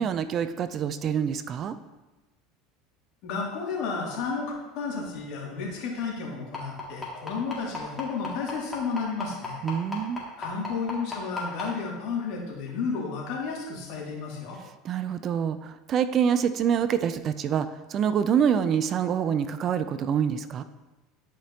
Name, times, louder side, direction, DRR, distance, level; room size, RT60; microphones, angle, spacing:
voice 1, 0.0-1.8 9.6-10.2 14.8-20.6, right 8 dB, 40° right, 12 dB, 0.4 m, -26 dB
voice 2, 3.2-9.6 10.4-14.6, left 5 dB, 65° left, -3 dB, 2.5 m, -32 dB
sound 1, 6.5-11.6 12.7-12.8 13.2-13.3 13.8-13.9, left 4 dB, 15° left, 2.4 m, -33 dB
12.0 x 5.1 x 2.9 m, 1.1 s
supercardioid pair, 110°, 0 cm